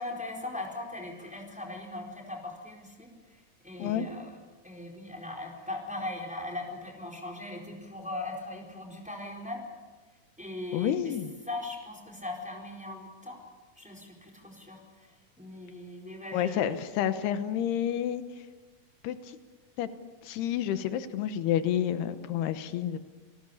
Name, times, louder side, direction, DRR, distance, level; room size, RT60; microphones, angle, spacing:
voice 1, 0.0-4.3 4.6-9.7 10.4-11.1 11.5-13.4 13.8-16.7, left 2 dB, ahead, 1 dB, 3.8 m, -39 dB
voice 2, 10.7-11.3 16.3-18.2 19.0-19.4 19.8-19.9 20.2-23.0, left 10 dB, 85° left, 11 dB, 3.1 m, -29 dB
29.5 x 19.0 x 7.1 m, 1.4 s
omnidirectional pair, 4.6 m